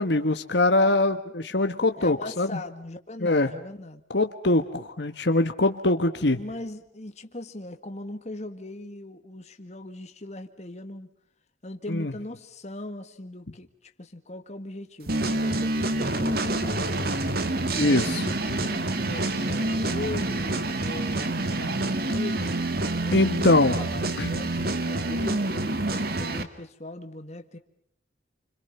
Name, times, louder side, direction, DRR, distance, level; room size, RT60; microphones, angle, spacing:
voice 1, 0.0-2.5 3.2-3.5 4.1-6.4 11.9-12.1 17.7-18.2 23.1-23.8 24.2-24.3, left 2 dB, 65° left, 7 dB, 1.4 m, -23 dB
voice 2, 2.0-4.0 6.4-11.1 11.6-13.7 14.0-17.2 17.8-22.5 23.0-27.6, left 1 dB, 35° left, 7 dB, 1.9 m, -39 dB
sound 1, 15.1-26.4, right 2 dB, 55° right, 1.9 m, -27 dB
29.5 x 26.0 x 5.6 m, 0.67 s
head